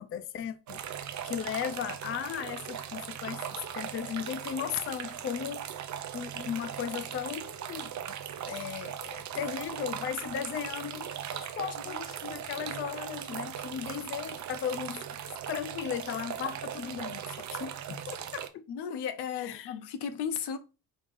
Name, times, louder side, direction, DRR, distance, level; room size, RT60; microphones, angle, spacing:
voice 1, 0.0-3.5 3.7-5.8 6.1-7.9 8.5-15.0 15.5-18.7 19.4-19.7, left 9 dB, 35° left, 0.4 m, -36 dB
sound 1, 0.7-18.5, right 9 dB, 45° right, 0.5 m, -39 dB
voice 2, 18.7-20.6, left 7 dB, 75° left, 0.8 m, -35 dB
4.9 x 3.5 x 2.5 m
cardioid pair, 105°, 41 cm